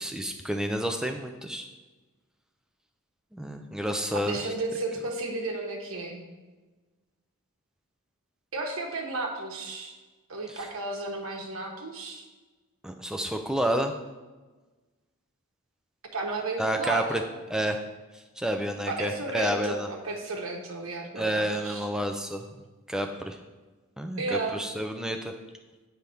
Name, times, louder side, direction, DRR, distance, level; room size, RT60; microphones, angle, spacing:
voice 1, 0.0-1.7 3.3-4.4 10.5-10.6 12.8-13.9 16.6-17.2 17.5-17.8 18.4-19.9 21.2-22.5 22.9-23.4 24.0-25.3, equal, 5° right, 4 dB, 0.4 m, -29 dB
voice 2, 4.2-6.2 8.5-9.9 10.3-12.2 16.1-17.3 18.9-21.9 24.2-24.6, right 2 dB, 70° right, 1 dB, 1.1 m, -33 dB
7.7 x 3.5 x 5.6 m, 1.3 s
head